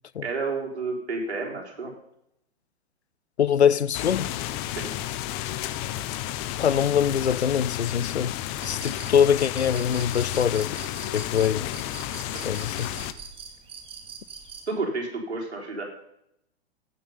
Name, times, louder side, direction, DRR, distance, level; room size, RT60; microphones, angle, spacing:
voice 1, 0.2-1.9 4.7-4.9 12.3-12.6 14.7-15.8, right 3 dB, 80° right, 4.0 m, -31 dB
voice 2, 3.4-4.3 6.6-8.3 8.6-10.7 11.1-11.7 12.4-12.9, left 8 dB, 85° left, 0.5 m, -23 dB
sound 1, 3.9-13.1, left 13 dB, 20° left, 0.4 m, -32 dB
sound 2, 8.6-14.7, right 6 dB, 15° right, 2.0 m, -43 dB
16.0 x 7.6 x 5.5 m
figure-of-eight pair, 115°, 32 cm